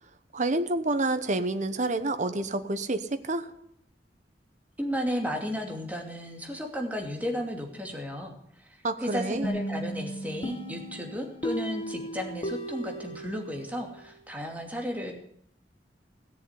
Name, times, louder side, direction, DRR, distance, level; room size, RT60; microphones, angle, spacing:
voice 1, 0.3-3.5 8.8-9.5, right 2 dB, 45° right, 9 dB, 1.1 m, -28 dB
voice 2, 4.8-15.1, equal, 10° right, 1 dB, 2.6 m, -34 dB
sound 1, 9.4-14.1, right 1 dB, 30° left, 1.3 m, -36 dB
17.5 x 7.1 x 9.7 m, 0.70 s
head